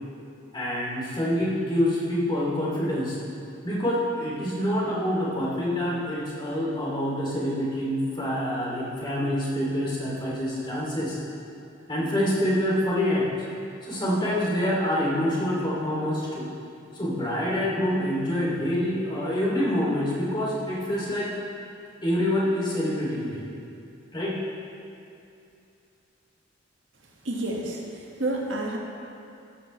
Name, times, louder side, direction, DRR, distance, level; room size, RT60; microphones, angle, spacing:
voice 1, 0.5-3.2 3.6-11.2 11.9-13.3 13.8-16.5 16.9-21.3 22.0-23.4 24.1-24.4, equal, 25° left, -6 dB, 2.9 m, -26 dB
voice 2, 27.2-28.8, right 1 dB, 70° right, -2 dB, 1.8 m, -30 dB
14.5 x 12.0 x 3.3 m, 2.6 s
head